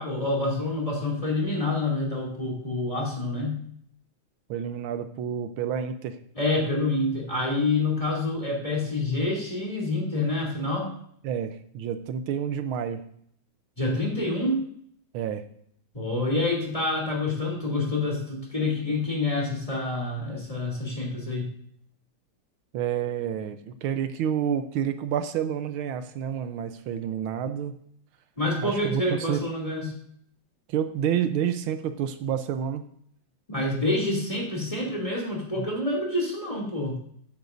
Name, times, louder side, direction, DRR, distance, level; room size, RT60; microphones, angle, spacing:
voice 1, 0.0-3.6 6.4-11.0 13.8-14.6 15.9-21.5 28.4-29.9 33.5-37.0, left 2 dB, 15° left, -2 dB, 2.7 m, -27 dB
voice 2, 4.5-6.2 11.2-13.0 15.1-15.5 22.7-27.7 28.6-29.4 30.7-32.8 35.6-35.7, right 9 dB, 85° right, 9 dB, 1.5 m, -29 dB
13.5 x 9.4 x 2.6 m, 0.66 s
omnidirectional pair, 2.2 m